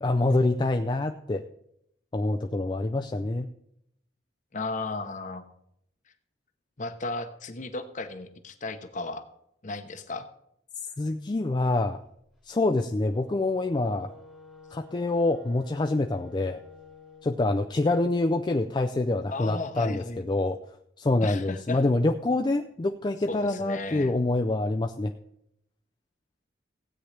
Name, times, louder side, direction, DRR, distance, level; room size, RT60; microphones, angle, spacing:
voice 1, 0.0-1.4 2.1-3.5 11.0-12.0 12.4-14.1 14.7-16.6 17.2-20.6 21.0-25.1, left 2 dB, 25° left, 4 dB, 0.4 m, -26 dB
voice 2, 4.5-5.4 6.8-9.3 9.6-10.3 19.3-20.2 21.2-21.8 23.3-24.1, left 3 dB, 40° left, 9 dB, 0.8 m, -35 dB
Wind instrument woodwind instrument, 12.8-17.4, left 3 dB, 5° right, 1.3 m, -50 dB
16.0 x 8.7 x 3.3 m, 0.76 s
head